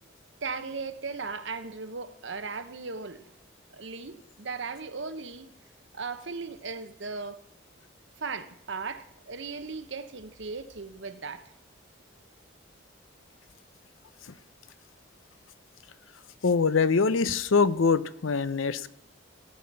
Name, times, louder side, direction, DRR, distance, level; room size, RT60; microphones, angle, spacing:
voice 1, 0.4-3.2 3.7-5.5 5.9-7.4 8.2-11.4, right 4 dB, 65° right, 11 dB, 0.9 m, -37 dB
voice 2, 16.4-18.9, left 5 dB, 85° left, 16 dB, 0.6 m, -24 dB
17.0 x 5.8 x 8.7 m, 0.75 s
head